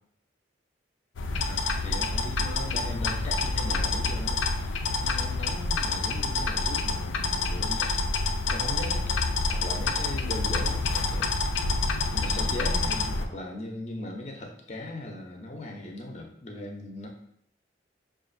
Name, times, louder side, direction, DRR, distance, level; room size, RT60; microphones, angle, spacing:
sound 1, 1.2-13.3, left 3 dB, 90° left, 0.4 m, -27 dB
voice 1, 1.5-7.9 8.5-11.3 12.1-17.1, left 1 dB, 35° left, 1 dB, 0.6 m, -39 dB
5.7 x 2.5 x 2.5 m, 0.69 s
head